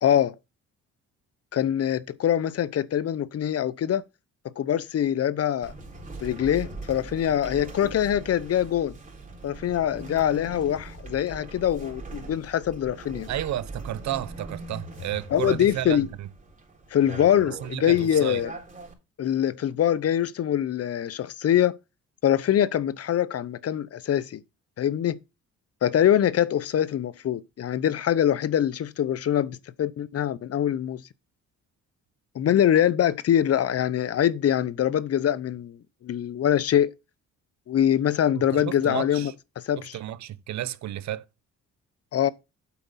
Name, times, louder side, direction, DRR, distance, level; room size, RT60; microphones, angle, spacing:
voice 1, 0.0-0.3 1.5-4.0 4.6-5.7 6.2-9.0 9.4-13.3 15.3-16.1 16.9-18.5 19.2-21.8 22.2-24.4 24.8-25.2 25.8-31.0 32.3-36.9 37.7-39.3 39.7-40.0 42.1-42.3, left 10 dB, 50° left, 0.7 m, -24 dB
sound 1, 5.6-18.9, right 2 dB, 25° right, 4.2 m, -41 dB
voice 2, 13.3-16.3 17.5-18.4 38.3-39.3 39.8-41.2, right 12 dB, 65° right, 0.8 m, -32 dB
8.6 x 7.8 x 4.1 m
cardioid pair, 90°, 30 cm